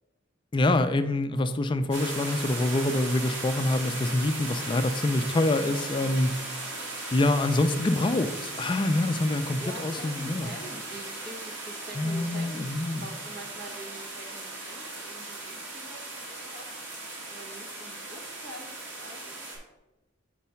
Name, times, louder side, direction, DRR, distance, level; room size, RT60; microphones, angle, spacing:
voice 1, 0.5-6.3 7.1-10.5 12.0-13.0, left 2 dB, 25° left, 9 dB, 0.3 m, -26 dB
sound 1, 1.9-19.6, right 2 dB, 70° right, 1.8 m, -37 dB
voice 2, 6.0-6.3 9.6-19.4, right 1 dB, 55° right, 1 dB, 1.2 m, -45 dB
4.6 x 4.2 x 5.6 m, 1.0 s
head